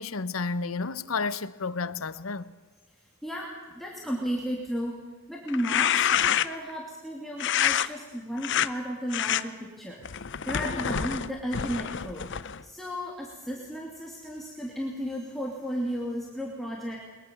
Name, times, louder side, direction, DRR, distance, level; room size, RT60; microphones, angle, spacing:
voice 1, 0.0-2.5, left 4 dB, 85° left, 0.9 m, -31 dB
voice 2, 3.2-10.0 10.5-12.3 12.6-17.0, equal, ahead, 2.9 m, -34 dB
sound 1, 5.5-6.7 7.4-7.9 8.4-8.7 9.1-9.4 10.0-12.6, left 9 dB, 60° left, 0.7 m, -27 dB
22.5 x 21.5 x 7.1 m
head